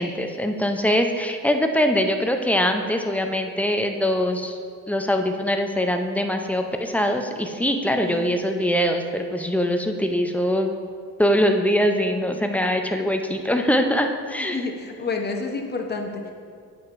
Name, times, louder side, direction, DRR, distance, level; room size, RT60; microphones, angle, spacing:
voice 1, 0.0-4.6 4.9-10.7 11.2-14.6, equal, 5° left, 4 dB, 0.4 m, -23 dB
voice 2, 8.0-8.3 14.5-16.3, left 3 dB, 30° left, 3 dB, 0.8 m, -29 dB
8.4 x 7.2 x 2.5 m, 2.1 s
cardioid pair, 105°, 36 cm